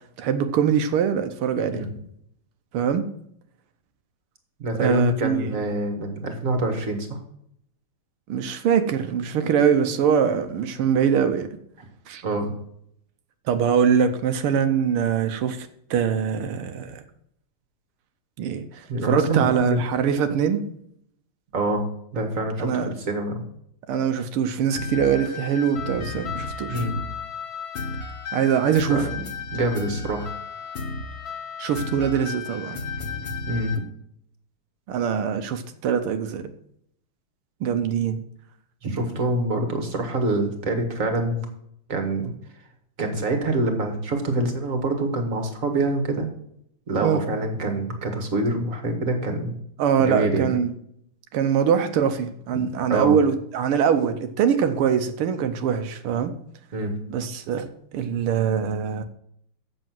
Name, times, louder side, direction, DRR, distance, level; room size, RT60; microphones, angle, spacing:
voice 1, 0.2-1.9 2.7-3.1 4.8-5.5 8.3-11.5 12.1-12.2 13.5-17.0 18.4-20.6 22.6-22.9 23.9-26.9 28.3-29.1 31.6-32.8 34.9-36.5 37.6-38.2 47.0-47.2 49.8-50.7 51.3-56.3 57.1-57.7 57.9-59.0, right 7 dB, 80° right, 8 dB, 1.7 m, -23 dB
voice 2, 4.6-7.2 12.2-12.5 18.9-19.8 21.5-21.9 22.1-23.4 26.7-26.9 28.9-29.3 29.5-30.3 33.5-33.8 38.8-41.5 41.9-42.3 43.0-46.3 46.9-49.6 50.0-50.5 52.5-52.6 52.9-53.2 56.7-57.0, right 2 dB, 40° right, 4 dB, 2.0 m, -25 dB
sound 1, 24.7-33.8, left 4 dB, 50° left, 1.6 m, -33 dB
7.8 x 6.9 x 7.5 m, 0.72 s
omnidirectional pair, 2.4 m